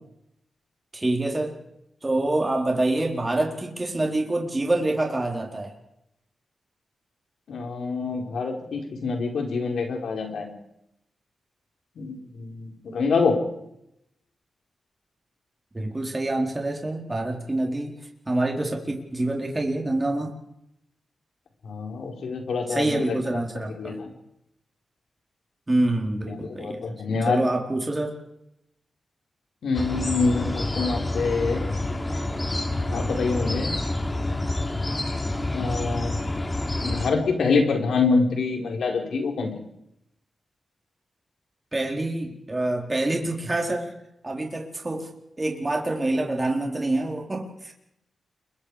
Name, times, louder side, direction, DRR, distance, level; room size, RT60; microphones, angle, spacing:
voice 1, 0.9-1.6 2.0-5.7 15.7-17.9 18.3-20.3 22.7-24.0 25.7-28.1 41.7-43.9 44.2-45.1 45.4-47.7, right 2 dB, 25° right, 1 dB, 4.1 m, -26 dB
voice 2, 7.5-10.5 12.0-13.4 21.6-23.4 23.8-24.1 26.3-27.4 29.6-31.6 32.9-33.7 35.5-36.2 36.8-39.6, left 4 dB, 85° left, 2 dB, 4.7 m, -26 dB
sound 1, 29.7-37.1, left 2 dB, 25° left, 3.3 m, -28 dB
30.0 x 23.0 x 5.0 m, 0.83 s
cardioid pair, 75°, 0 cm